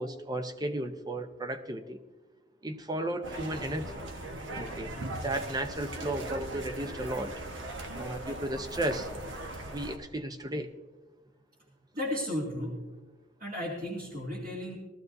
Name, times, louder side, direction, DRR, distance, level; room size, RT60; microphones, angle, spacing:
voice 1, 0.0-2.0 2.6-4.0 4.5-5.0 5.2-7.3 7.9-9.1 9.7-10.7, right 1 dB, 20° right, 8 dB, 0.8 m, -34 dB
sound 1, 3.2-10.0, right 1 dB, 85° right, 1.4 m, -39 dB
voice 2, 11.9-12.8 13.4-14.7, left 1 dB, 50° right, -4 dB, 2.5 m, -34 dB
19.0 x 13.5 x 2.7 m, 1.2 s
head